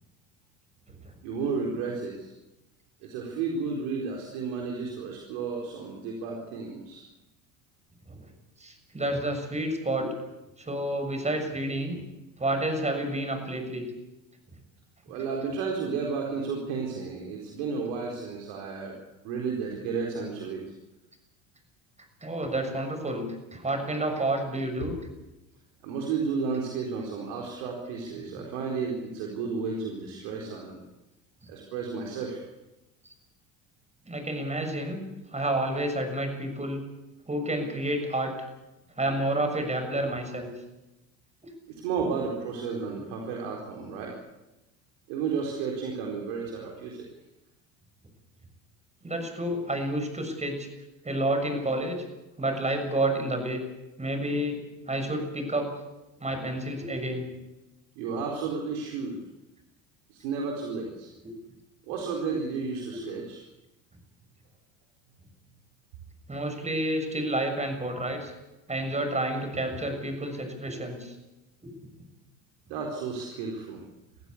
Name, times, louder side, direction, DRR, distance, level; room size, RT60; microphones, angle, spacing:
voice 1, 1.2-2.3 3.0-7.0 15.1-19.0 19.2-20.6 25.8-30.8 31.5-32.4 41.7-44.2 45.1-47.1 58.0-59.2 60.1-61.1 61.8-63.4 72.7-73.8, right 5 dB, 70° right, 0 dB, 4.3 m, -32 dB
voice 2, 8.6-10.1 10.6-12.0 12.4-13.9 22.2-25.0 34.0-35.0 35.3-36.8 37.3-38.3 39.0-40.5 41.4-41.5 49.0-50.7 51.0-52.0 52.4-53.6 54.0-54.6 54.9-55.7 56.2-57.3 61.2-61.3 62.9-63.0 66.3-68.3 68.7-71.1 71.6-71.7, right 1 dB, 15° right, 6 dB, 6.7 m, -30 dB
23.5 x 15.5 x 8.5 m, 1.0 s
hypercardioid pair, 80°, 42 cm